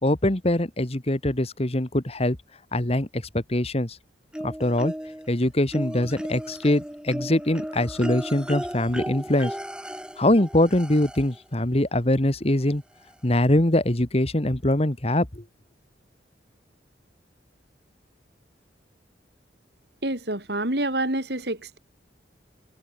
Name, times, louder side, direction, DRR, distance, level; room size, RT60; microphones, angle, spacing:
voice 1, 0.0-2.4 2.7-4.0 4.4-4.9 5.3-9.5 10.2-12.8 13.2-15.4, left 1 dB, 35° left, 1.9 m, -23 dB
sound 1, 4.3-5.3 5.7-11.4 12.6-12.7 13.1-13.2, equal, 5° right, 4.8 m, -35 dB
voice 2, 20.0-21.8, right 1 dB, 65° right, 5.7 m, -27 dB
head